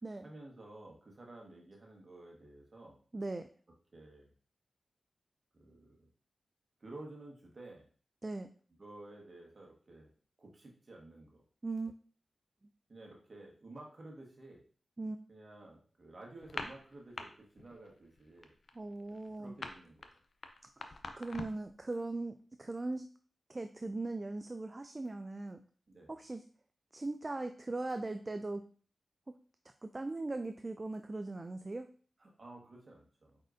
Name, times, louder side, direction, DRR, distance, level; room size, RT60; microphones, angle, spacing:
voice 1, 0.2-3.0 3.9-4.3 5.5-6.1 6.8-7.9 8.8-10.1 10.4-11.4 12.9-14.6 15.3-18.5 19.1-20.2 25.9-26.2 32.2-33.4, right 2 dB, 55° right, -1 dB, 1.5 m, -52 dB
voice 2, 3.1-3.5 8.2-8.5 11.6-11.9 15.0-15.2 18.7-19.6 20.8-23.1 23.5-25.6 26.1-26.4 26.9-28.6 29.3-29.4 29.8-31.9, right 2 dB, 35° right, 8 dB, 0.3 m, -39 dB
sound 1, 16.4-17.2 17.6-17.9 18.1-21.7, left 3 dB, 70° left, 0.5 m, -43 dB
4.5 x 4.2 x 2.6 m, 0.43 s
cardioid pair, 45°, 0 cm